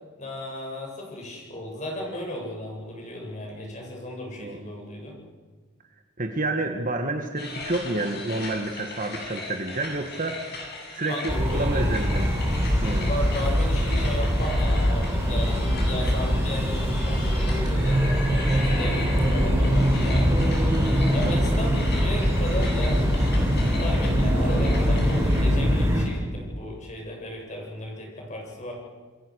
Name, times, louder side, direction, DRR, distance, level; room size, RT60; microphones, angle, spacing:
voice 1, 0.2-5.1 11.1-11.9 13.0-20.6 21.1-28.7, left 1 dB, 35° left, 0 dB, 7.7 m, -35 dB
voice 2, 6.2-12.3 12.8-13.1 21.2-21.4, right 2 dB, 40° right, 4 dB, 1.8 m, -29 dB
sound 1, 7.3-25.4, left 3 dB, 50° left, 8.0 m, -38 dB
sound 2, 11.3-26.0, equal, 15° right, 5.5 m, -22 dB
28.5 x 22.0 x 6.5 m, 1.4 s
head